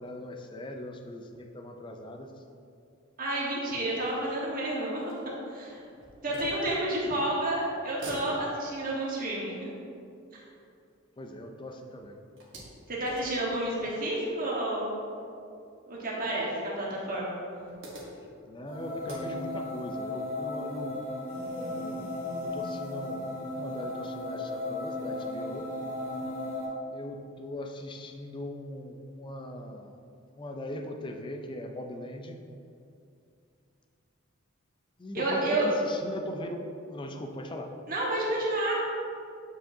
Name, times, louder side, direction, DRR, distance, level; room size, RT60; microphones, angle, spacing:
voice 1, 0.0-2.3 11.2-12.2 18.5-21.0 21.5-25.7 26.9-29.9 30.4-32.4 35.0-36.6 36.9-37.7, left 1 dB, 25° left, 4 dB, 0.4 m, -40 dB
voice 2, 3.2-5.0 5.5-5.8 6.2-9.7 10.3-10.4 12.9-15.0 15.9-17.4 35.1-35.7 37.9-38.8, right 1 dB, 45° right, -5 dB, 1.3 m, -30 dB
sound 1, 4.5-7.3 7.7-11.6 12.0-14.6 15.5-15.6 15.9-16.0 17.1-19.8, right 1 dB, 60° right, 1.4 m, -48 dB
sound 2, 18.7-26.7, left 2 dB, 75° left, 1.5 m, -35 dB
7.6 x 4.9 x 2.7 m, 2.5 s
head